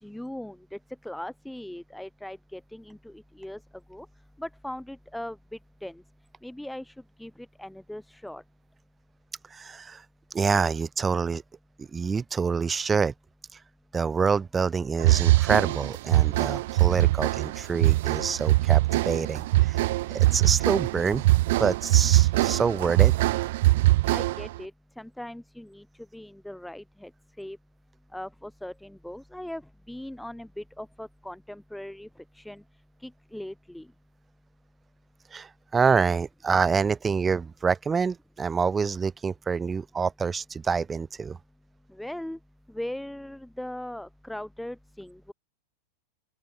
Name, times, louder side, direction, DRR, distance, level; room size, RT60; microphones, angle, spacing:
voice 1, 0.0-3.6 3.9-4.1 4.4-5.4 5.8-6.0 6.4-8.4 24.1-24.7 25.0-25.9 26.1-27.1 27.4-27.6 28.1-29.6 29.9-32.1 32.3-32.6 33.0-33.9 41.9-42.4 42.7-45.3, left 1 dB, ahead, 5.5 m, -39 dB
voice 2, 9.5-10.0 10.3-11.4 11.8-13.1 13.9-19.8 20.1-21.2 21.6-23.1 35.3-41.4, right 5 dB, 15° right, 2.5 m, -26 dB
sound 1, 15.0-24.6, right 18 dB, 50° right, 1.9 m, -22 dB
open air
figure-of-eight pair, 90°, 0 cm